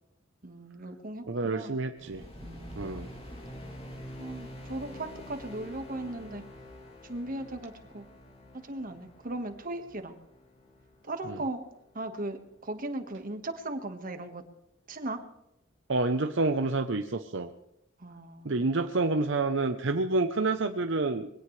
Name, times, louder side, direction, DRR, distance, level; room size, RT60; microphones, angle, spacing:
voice 1, 0.4-1.8 2.4-3.1 4.2-6.4 7.0-8.0 8.5-10.2 11.0-11.6 11.9-14.4 14.9-15.2 18.0-18.7, right 2 dB, 45° right, 7 dB, 1.6 m, -38 dB
voice 2, 1.3-2.2 2.8-3.1 11.3-11.4 15.9-17.5 18.4-21.3, right 3 dB, 65° right, 7 dB, 0.8 m, -28 dB
sound 1, 2.0-12.4, left 1 dB, 30° left, 2.9 m, -47 dB
22.0 x 17.0 x 3.3 m, 0.84 s
head